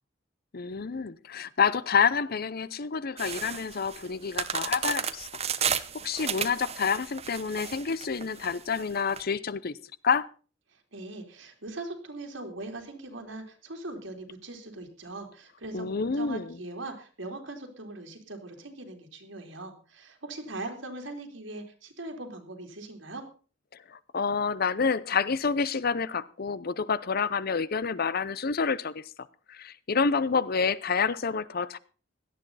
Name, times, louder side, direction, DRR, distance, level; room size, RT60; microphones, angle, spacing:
voice 1, 0.5-5.3 5.7-9.7 10.0-10.3 15.7-16.6 23.9-29.0 29.5-31.8, left 5 dB, 50° left, 18 dB, 0.7 m, -28 dB
sound 1, 3.2-9.2, right 7 dB, 35° right, 0.9 m, -33 dB
voice 2, 10.7-23.2, right 2 dB, 75° right, 4 dB, 3.5 m, -41 dB
17.0 x 12.5 x 4.1 m, 0.38 s
head